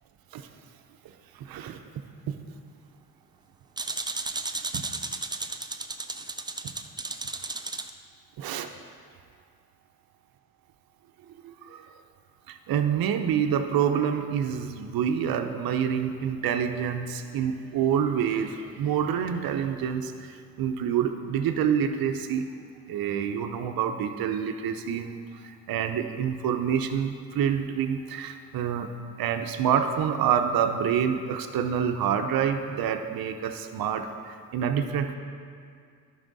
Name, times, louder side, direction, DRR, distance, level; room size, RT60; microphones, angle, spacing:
voice 1, 1.3-1.8 2.3-2.4 4.7-4.8 6.6-6.7 8.4-8.7 11.4-11.9 12.5-22.5 22.9-28.9 29.2-34.1 34.5-35.1, right 8 dB, 70° right, 7 dB, 0.7 m, -27 dB
sound 1, 3.8-7.9, right 3 dB, 10° right, 0.4 m, -34 dB
11.5 x 5.5 x 4.1 m, 2.3 s
cardioid pair, 70°, 37 cm